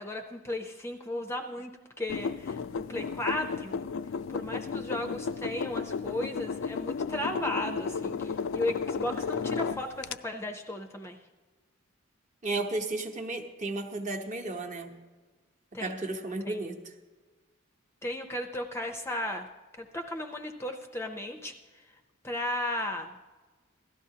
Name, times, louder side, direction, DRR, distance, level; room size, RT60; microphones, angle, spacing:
voice 1, 0.0-1.7 2.0-3.8 4.3-11.2 15.7-16.0 16.5-16.6 18.0-19.5 19.8-21.5 22.2-23.1, left 1 dB, 10° left, 4 dB, 0.5 m, -35 dB
sound 1, 2.1-10.2, left 5 dB, 60° left, 0.3 m, -33 dB
voice 2, 12.4-14.9 15.8-16.9, right 2 dB, 35° right, 4 dB, 0.9 m, -33 dB
16.5 x 12.5 x 2.8 m, 1.3 s
head